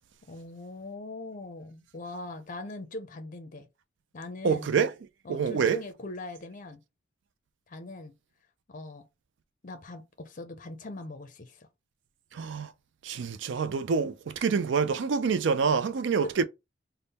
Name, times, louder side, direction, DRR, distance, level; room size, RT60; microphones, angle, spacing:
voice 1, 0.3-3.7 4.1-4.7 5.2-6.8 7.7-8.1 8.7-9.0 9.6-11.7 16.2-16.3, left 2 dB, 40° left, 0.5 m, -41 dB
voice 2, 4.4-4.9 5.3-5.8 12.3-12.7 13.0-16.4, right 5 dB, 65° right, 0.4 m, -26 dB
3.6 x 2.1 x 4.0 m
head